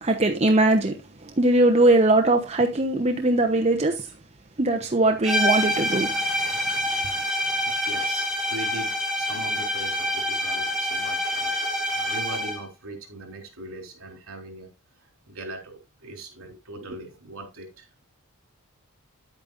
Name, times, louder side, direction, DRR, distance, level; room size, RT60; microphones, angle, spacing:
voice 1, 0.0-4.1 4.6-6.2, right 2 dB, 30° right, 1.0 m, -21 dB
sound 1, 5.2-12.7, equal, ahead, 3.6 m, -26 dB
voice 2, 7.4-11.6 11.9-14.7 15.3-17.9, right 1 dB, 65° right, 3.8 m, -40 dB
10.5 x 8.8 x 2.6 m
head